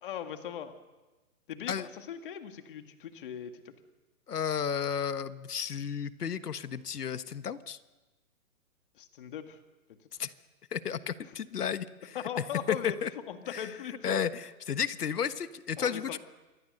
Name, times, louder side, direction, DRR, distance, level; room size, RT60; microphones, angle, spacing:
voice 1, 0.0-0.7 1.5-3.7 9.0-9.6 9.9-10.0 12.1-14.2 15.8-16.2, left 9 dB, 35° left, 7 dB, 2.0 m, -39 dB
voice 2, 4.3-7.8 10.2-10.3 10.7-12.2 12.7-13.1 13.5-13.7 14.0-16.2, left 7 dB, 80° left, 12 dB, 1.4 m, -33 dB
27.5 x 23.5 x 6.7 m, 1.1 s
hypercardioid pair, 165°, 46 cm